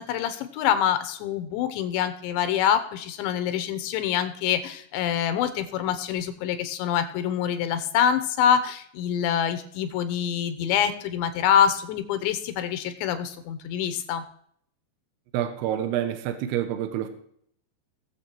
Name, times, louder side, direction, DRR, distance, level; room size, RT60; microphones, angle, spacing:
voice 1, 0.0-14.2, left 9 dB, 90° left, 10 dB, 3.3 m, -25 dB
voice 2, 15.3-17.1, right 11 dB, 75° right, 8 dB, 2.9 m, -27 dB
18.0 x 7.4 x 4.6 m, 0.65 s
omnidirectional pair, 5.2 m